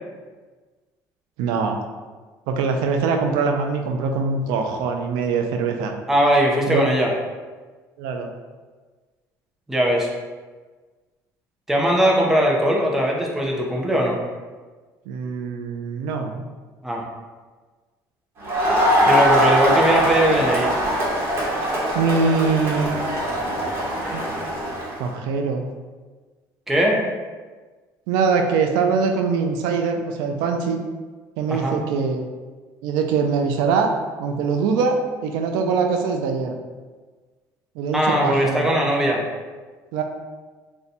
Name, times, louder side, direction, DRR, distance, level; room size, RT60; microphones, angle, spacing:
voice 1, 1.4-1.8 2.5-5.9 6.7-6.8 8.0-8.3 15.1-16.4 21.9-23.0 24.1-24.3 25.0-25.6 28.1-30.8 31.4-32.3 32.8-33.9 34.2-35.0 35.2-36.5 37.8-38.7 39.9-40.0, right 5 dB, 90° right, 4 dB, 0.4 m, -23 dB
voice 2, 6.1-7.1 9.7-10.1 11.7-14.2 16.8-17.0 19.1-20.7 26.7-27.0 31.5-31.7 37.9-39.2, equal, 5° right, -2 dB, 0.5 m, -20 dB
Crowd, 18.4-25.0, equal, 35° right, 0.9 m, -21 dB
2.6 x 2.2 x 4.0 m, 1.4 s
cardioid pair, 145°, 7 cm